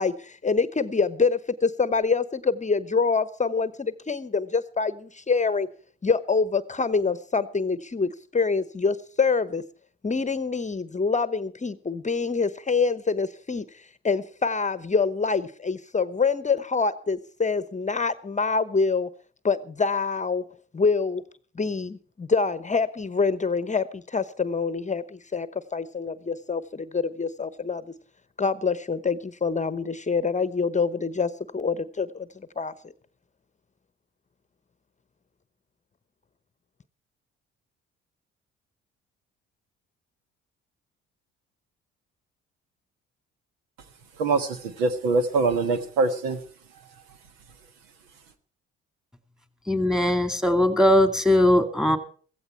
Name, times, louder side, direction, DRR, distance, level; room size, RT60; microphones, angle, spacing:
voice 1, 0.0-5.7 6.0-9.6 10.0-13.7 14.0-19.1 19.4-20.5 20.7-21.2 21.6-25.0 25.3-27.8 28.4-32.3 32.6-32.7, left 4 dB, 25° left, 0.9 m, -25 dB
voice 2, 44.2-46.4, right 3 dB, 85° right, 1.4 m, -24 dB
voice 3, 49.7-52.0, left 1 dB, ahead, 2.2 m, -20 dB
15.5 x 15.0 x 4.5 m
hypercardioid pair, 55°, 30 cm